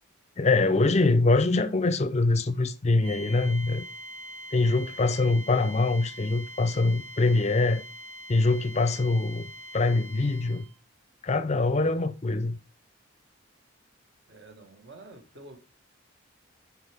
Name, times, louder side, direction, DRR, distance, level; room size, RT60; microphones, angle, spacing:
voice 1, 0.4-3.9 4.5-7.8 8.3-9.5 9.7-10.6 11.2-12.6, left 3 dB, 35° left, 0.5 m, -24 dB
sound 1, 3.0-10.7, equal, 35° right, 2.1 m, -43 dB
voice 2, 14.3-15.6, right 2 dB, 55° right, 1.7 m, -48 dB
9.9 x 4.8 x 3.5 m
head